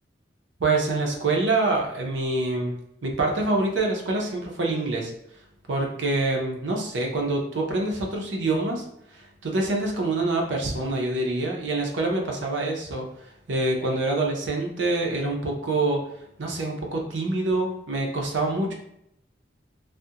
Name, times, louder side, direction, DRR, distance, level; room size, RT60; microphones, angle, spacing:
voice 1, 0.6-2.8 3.0-5.1 5.7-8.8 9.1-16.0 16.4-18.7, right 2 dB, 85° right, 1 dB, 0.6 m, -26 dB
2.4 x 2.1 x 2.7 m, 0.76 s
head